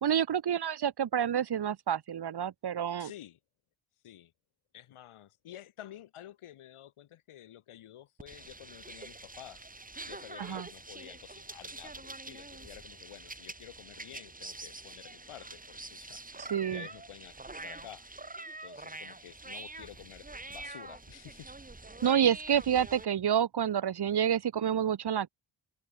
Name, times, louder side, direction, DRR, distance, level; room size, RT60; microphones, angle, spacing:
voice 1, 0.0-3.1 10.4-10.7 16.4-16.8 22.0-25.3, right 9 dB, 50° right, 1.5 m, -28 dB
voice 2, 3.0-3.4 4.0-4.3 4.7-9.7 10.0-18.1 18.6-21.5, left 12 dB, 85° left, 7.3 m, -51 dB
sound 1, 8.2-23.1, right 2 dB, 15° right, 3.4 m, -45 dB
cardioid pair, 80°, 49 cm